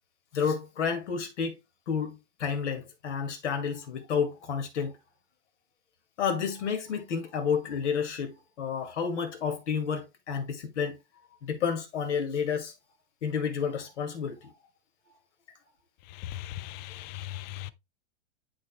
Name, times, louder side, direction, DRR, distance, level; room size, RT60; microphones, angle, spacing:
voice 1, 0.3-1.5 1.9-4.9 6.2-11.0 11.4-12.7 13.2-14.5, left 6 dB, 75° left, 2.2 m, -30 dB
voice 2, 16.1-17.7, left 13 dB, 30° left, 0.4 m, -38 dB
11.5 x 4.4 x 2.2 m
hypercardioid pair, 125°, 36 cm